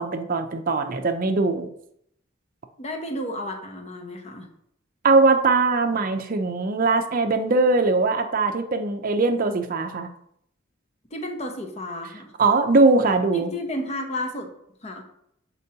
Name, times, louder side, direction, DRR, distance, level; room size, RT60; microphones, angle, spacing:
voice 1, 0.0-1.7 5.0-10.1 12.4-13.5, right 3 dB, 45° right, 6 dB, 0.6 m, -21 dB
voice 2, 2.8-4.5 11.1-12.3 13.3-14.5 14.8-15.0, left 1 dB, 30° left, 4 dB, 0.8 m, -32 dB
8.0 x 4.4 x 2.8 m, 0.73 s
head